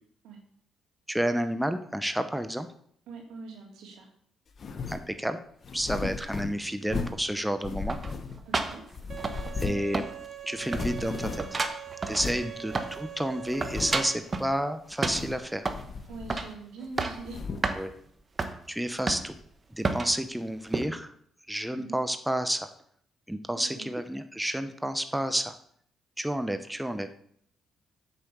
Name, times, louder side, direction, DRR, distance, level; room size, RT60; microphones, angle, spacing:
voice 1, 1.1-2.7 4.9-5.4 5.7-8.0 9.5-10.1 10.5-11.4 12.1-15.6 17.7-17.9 18.7-19.3 19.7-21.1 21.5-22.7 23.3-25.5 26.2-27.1, equal, 5° right, 9 dB, 0.9 m, -30 dB
voice 2, 3.1-4.1 8.4-8.8 12.4-12.5 16.1-17.5 21.7-22.0 23.6-23.9, right 4 dB, 85° right, 1 dB, 3.0 m, -43 dB
sound 1, 4.6-5.1 5.6-7.3 7.6-8.6 8.9-10.0 10.2-10.3 10.6-11.6 12.2-12.5 13.0-13.1 13.5-14.2 14.9-15.5 15.7-16.6 17.0-17.8, left 4 dB, 50° left, 1.3 m, -36 dB
sound 2, 7.9-9.7 9.9-10.5 10.7-13.1 13.4-14.5 15.0-15.9 16.3-16.6 16.8-17.3 17.6-17.8 18.4-18.6 19.1-19.5 19.8-20.2 20.7-20.9, right 3 dB, 35° right, 1.2 m, -31 dB
Bowed string instrument, 9.1-14.2, right 9 dB, 50° right, 1.3 m, -42 dB
8.6 x 7.3 x 7.1 m, 0.66 s
cardioid pair, 90°, 0 cm